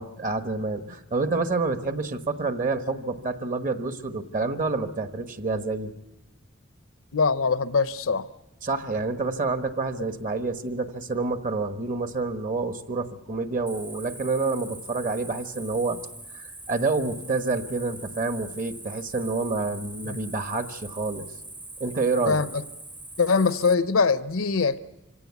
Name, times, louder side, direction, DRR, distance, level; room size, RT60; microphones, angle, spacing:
voice 1, 0.0-5.9 8.6-16.0 16.3-21.3 21.8-22.4, right 3 dB, 40° right, 1.2 m, -28 dB
voice 2, 7.1-8.3 20.0-20.2 22.3-22.5 23.2-24.8, left 4 dB, 70° left, 0.7 m, -22 dB
Cricket, 13.7-23.7, right 2 dB, 10° right, 0.7 m, -42 dB
25.0 x 17.0 x 8.3 m
head